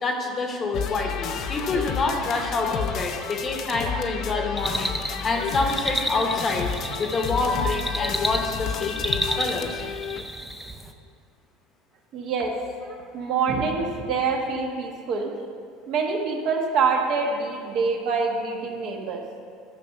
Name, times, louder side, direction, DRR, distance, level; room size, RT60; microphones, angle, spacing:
voice 1, 0.0-4.9 5.2-6.7 7.0-9.8, left 3 dB, 20° left, 3 dB, 1.0 m, -27 dB
sound 1, 0.7-10.2, left 7 dB, 45° left, 0.6 m, -31 dB
sound 2, 4.6-10.9, equal, 5° right, 0.5 m, -31 dB
voice 2, 12.1-12.5 12.8-15.3 15.9-19.2, right 4 dB, 50° right, 1 dB, 1.3 m, -25 dB
11.5 x 5.2 x 6.6 m, 2.3 s
cardioid pair, 155°, 0 cm